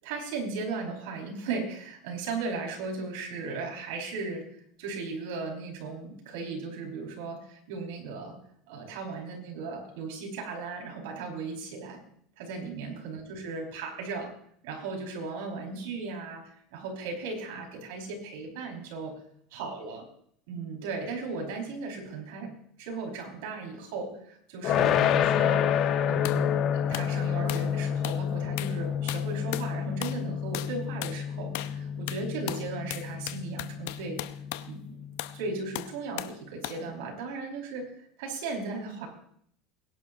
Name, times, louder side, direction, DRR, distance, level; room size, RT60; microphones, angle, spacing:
voice 1, 0.0-4.5 4.8-8.4 8.7-12.0 12.4-14.3 14.6-19.2 19.5-20.0 20.5-34.2 34.7-35.0 35.3-37.9 38.2-39.1, right 4 dB, 85° right, 1 dB, 5.0 m, -36 dB
sound 1, 24.6-35.6, left 9 dB, 45° left, 1.1 m, -29 dB
sound 2, 26.2-26.4 26.9-27.1 27.5-27.7 28.0-28.2 28.6-28.8 29.1-29.7 30.0-30.2 30.5-30.7 31.0-31.2 31.5-31.8 32.1-34.7 35.2-35.4 35.7-36.4 36.6-36.8, left 15 dB, 85° left, 0.7 m, -37 dB
22.5 x 11.0 x 2.8 m, 0.64 s
supercardioid pair, 135°, 0 cm